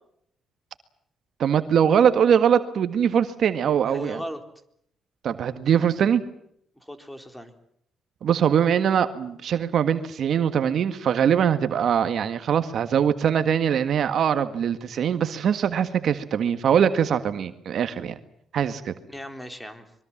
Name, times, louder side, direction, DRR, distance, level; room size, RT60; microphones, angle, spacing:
voice 1, 1.4-4.2 5.2-6.2 8.2-18.1 18.5-18.9, right 8 dB, 65° right, 10 dB, 1.7 m, -22 dB
voice 2, 3.8-4.4 6.8-7.5 19.0-19.9, equal, 5° left, 8 dB, 3.9 m, -37 dB
25.0 x 23.0 x 7.4 m, 0.71 s
cardioid pair, 90°, 0 cm